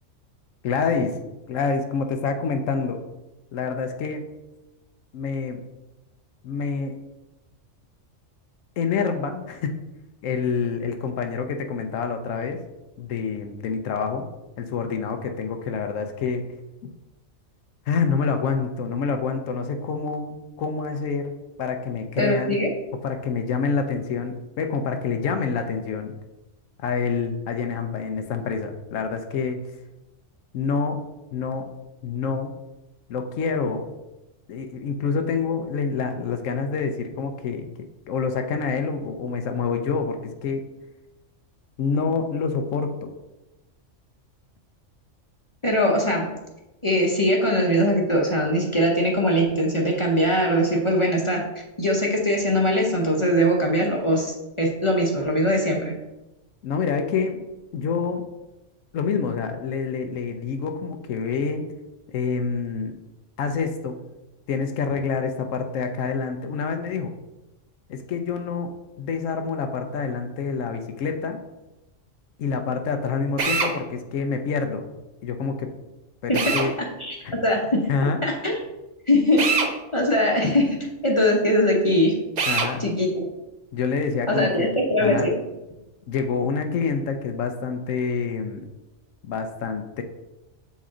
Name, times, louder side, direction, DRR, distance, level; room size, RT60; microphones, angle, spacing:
voice 1, 0.6-1.2 1.5-3.0 3.5-4.2 5.1-5.6 6.4-6.9 8.8-9.7 10.2-12.6 13.0-14.3 14.6-16.4 16.8-16.9 17.9-21.3 21.6-22.6 23.0-26.1 26.8-29.6 30.5-31.0 31.3-31.7 32.0-32.5 33.1-33.9 34.5-37.7 38.1-40.7 41.8-43.1 56.6-57.4 57.7-58.3 58.9-61.7 62.1-62.9 63.4-64.0 64.5-67.1 67.9-68.7 69.0-71.4 72.4-74.9 75.2-75.7 76.2-76.7 77.2-77.3 77.9-78.2 82.5-82.8 83.7-84.7 85.0-85.3 86.1-88.7 89.2-90.0, left 5 dB, 85° left, 6 dB, 1.0 m, -27 dB
voice 2, 22.2-22.7 45.6-46.3 46.8-51.4 51.8-55.9 76.3-76.5 77.0-77.9 78.2-78.6 79.1-79.5 79.9-80.8 81.0-82.1 82.8-83.3 84.3-85.3, equal, 30° left, -1 dB, 0.8 m, -21 dB
Drill, 73.4-73.7 76.3-76.7 79.4-79.7 82.4-82.7, right 4 dB, 45° right, 0.7 m, -23 dB
7.2 x 4.2 x 3.7 m, 1.0 s
omnidirectional pair, 1.3 m